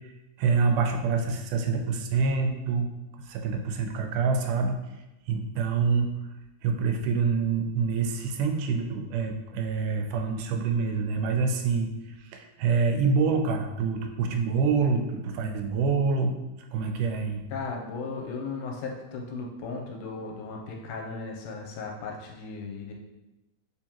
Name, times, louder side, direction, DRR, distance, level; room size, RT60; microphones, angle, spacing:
voice 1, 0.4-2.9 3.3-4.8 5.3-6.1 6.6-11.9 12.3-16.3 16.7-17.4, right 5 dB, 85° right, 4 dB, 2.1 m, -26 dB
voice 2, 17.5-22.9, left 4 dB, 85° left, 0 dB, 2.1 m, -36 dB
4.8 x 3.6 x 2.9 m, 1.0 s
omnidirectional pair, 3.6 m